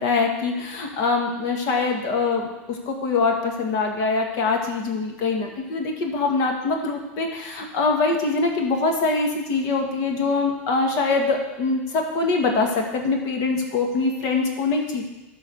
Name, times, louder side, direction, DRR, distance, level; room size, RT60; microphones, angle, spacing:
voice 1, 0.0-15.1, left 3 dB, 55° left, 2 dB, 1.8 m, -23 dB
11.5 x 4.0 x 6.8 m, 1.1 s
hypercardioid pair, 105°, 7 cm